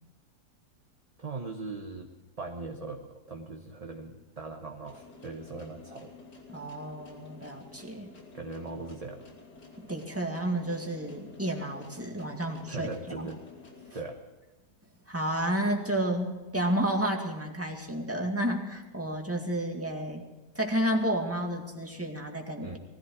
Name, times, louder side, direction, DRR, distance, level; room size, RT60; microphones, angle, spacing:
voice 1, 1.2-2.1 2.4-6.1 8.3-9.2 12.7-13.4 13.9-14.2 22.6-22.8, right 3 dB, 25° right, 2 dB, 1.1 m, -39 dB
sound 1, 4.9-13.9, left 4 dB, 90° left, 3.4 m, -51 dB
voice 2, 6.5-8.1 9.8-12.9 13.9-14.0 15.1-20.3 20.5-22.8, right 1 dB, 10° right, 2 dB, 2.0 m, -31 dB
19.5 x 14.5 x 4.7 m, 1.2 s
omnidirectional pair, 1.7 m